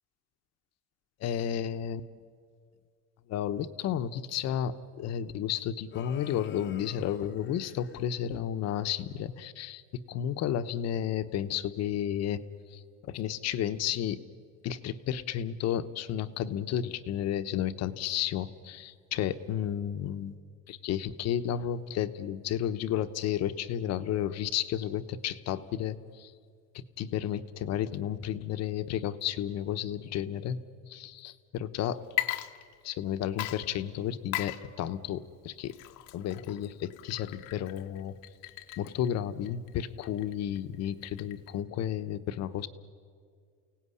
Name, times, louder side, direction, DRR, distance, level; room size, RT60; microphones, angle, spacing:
voice 1, 1.2-2.1 3.3-14.2 14.6-20.4 20.7-26.3 26.7-30.6 30.9-32.1 32.8-35.8 36.1-38.2 38.8-42.7, left 10 dB, 55° left, 11 dB, 1.1 m, -32 dB
sound 1, 5.9-8.0, left 8 dB, 35° left, 1.0 m, -48 dB
Water / Liquid, 32.0-33.1 33.4-41.6, left 16 dB, 80° left, 1.2 m, -39 dB
29.5 x 17.5 x 9.9 m, 2.2 s
cardioid pair, 150°, 32 cm